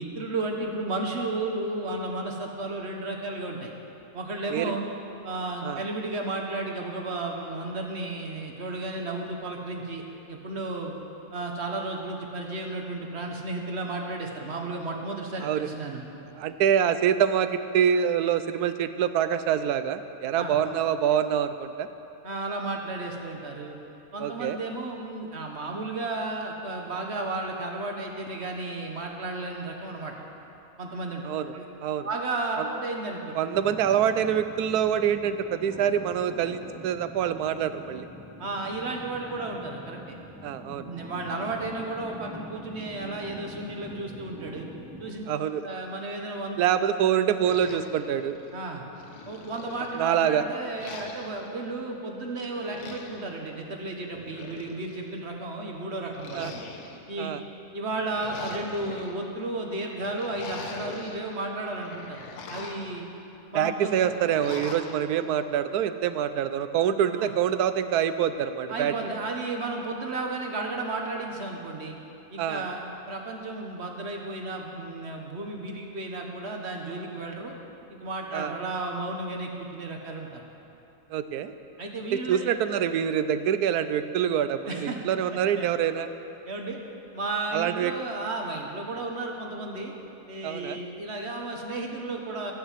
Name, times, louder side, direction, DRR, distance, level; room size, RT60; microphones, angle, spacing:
voice 1, 0.0-3.7 4.1-4.8 5.2-10.9 11.3-16.0 20.4-20.6 22.2-23.7 24.1-30.1 30.8-31.2 31.5-31.7 32.0-33.3 38.4-40.2 40.9-44.7 45.0-45.3 45.6-46.6 48.5-48.8 49.3-56.6 57.1-57.3 57.7-63.1 63.5-64.1 67.1-67.3 68.7-72.0 72.3-77.5 77.9-80.4 81.8-82.5 84.7-85.0 85.6-85.7 86.4-86.8 87.1-89.9 90.3-92.5, right 2 dB, 45° right, 1 dB, 1.5 m, -33 dB
voice 2, 16.4-21.9 24.2-24.6 31.2-31.5 31.8-32.1 32.6-32.7 33.4-38.1 40.4-40.9 45.3-45.7 46.6-48.4 50.0-50.4 56.3-56.5 57.2-57.4 63.5-68.9 72.4-72.6 78.3-78.5 81.1-81.5 82.1-86.1 87.5-87.9 90.4-90.8, right 9 dB, 80° right, 11 dB, 1.1 m, -25 dB
sound 1, 33.5-45.1, equal, 5° right, 0.7 m, -45 dB
sound 2, 47.4-48.6 49.0-50.2 50.8-51.5 52.5-53.3 54.1-55.1 56.1-57.1 57.9-59.1 60.0-61.2 61.6-63.0 63.8-65.0, left 4 dB, 80° left, 1.5 m, -42 dB
12.0 x 9.3 x 7.4 m, 2.8 s
omnidirectional pair, 1.6 m